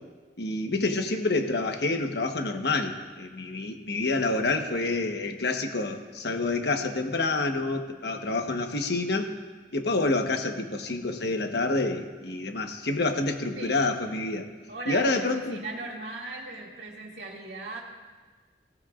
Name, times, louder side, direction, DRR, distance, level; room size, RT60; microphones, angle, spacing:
voice 1, 0.4-9.3 9.7-14.5 14.9-15.6, left 2 dB, 65° left, 4 dB, 1.2 m, -28 dB
voice 2, 14.7-17.8, right 2 dB, 70° right, -1 dB, 2.4 m, -38 dB
20.0 x 16.0 x 2.5 m, 1.4 s
head